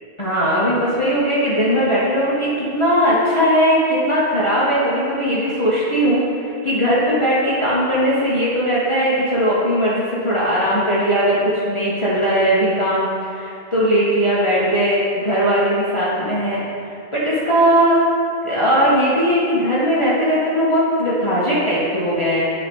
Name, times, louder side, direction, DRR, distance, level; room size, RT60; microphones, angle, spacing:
voice 1, 0.2-18.1 18.4-22.5, equal, 30° left, -9 dB, 1.0 m, -19 dB
8.9 x 3.0 x 5.3 m, 2.5 s
omnidirectional pair, 1.1 m